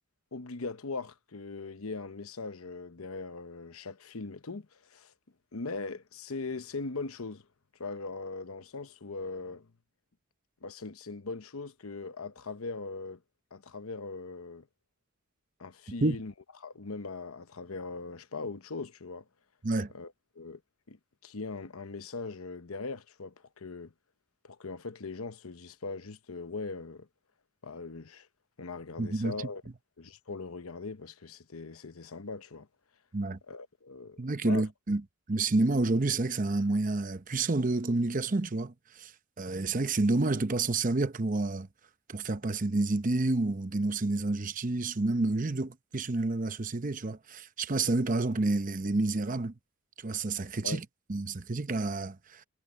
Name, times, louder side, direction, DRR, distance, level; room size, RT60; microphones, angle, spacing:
voice 1, 0.3-5.1 5.5-7.5 7.8-9.7 10.6-13.2 13.5-14.7 15.6-16.3 16.6-19.2 19.9-20.6 20.9-23.9 24.4-27.1 27.6-28.3 28.6-29.6 30.0-32.7 33.5-34.6 50.6-50.8, left 3 dB, 90° left, 0.9 m, -40 dB
voice 2, 29.0-29.3 33.1-33.4 34.2-35.0 35.3-38.7 39.0-39.1 39.4-41.7 42.1-49.5 50.0-50.8 51.1-52.4, right 2 dB, 40° right, 0.8 m, -29 dB
head